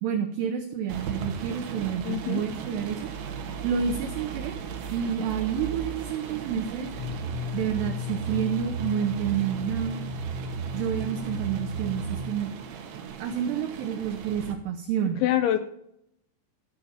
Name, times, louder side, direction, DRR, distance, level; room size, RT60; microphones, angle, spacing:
voice 1, 0.0-3.1 3.6-4.6 4.9-6.9 7.5-10.0 10.7-12.5 13.2-15.2, right 8 dB, 85° right, 5 dB, 2.4 m, -29 dB
sound 1, 0.9-14.5, right 7 dB, 70° right, 3.0 m, -38 dB
voice 2, 2.0-2.4 15.2-15.6, left 12 dB, 80° left, 10 dB, 2.7 m, -24 dB
sound 2, 6.9-12.3, equal, 50° left, 5.9 m, -34 dB
14.0 x 5.6 x 7.1 m, 0.76 s
omnidirectional pair, 5.8 m